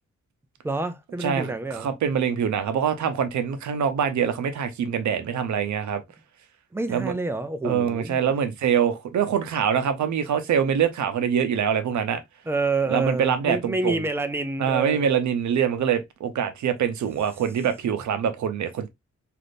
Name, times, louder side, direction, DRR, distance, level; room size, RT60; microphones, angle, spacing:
voice 1, 0.6-1.9 6.7-8.3 12.5-15.1, right 3 dB, 10° right, 0.3 m, -28 dB
voice 2, 1.2-6.0 6.9-7.1 7.6-12.2 12.9-14.0 14.6-18.9, right 8 dB, 80° right, 0.6 m, -24 dB
3.4 x 2.5 x 2.4 m
wide cardioid pair, 145°, 29 cm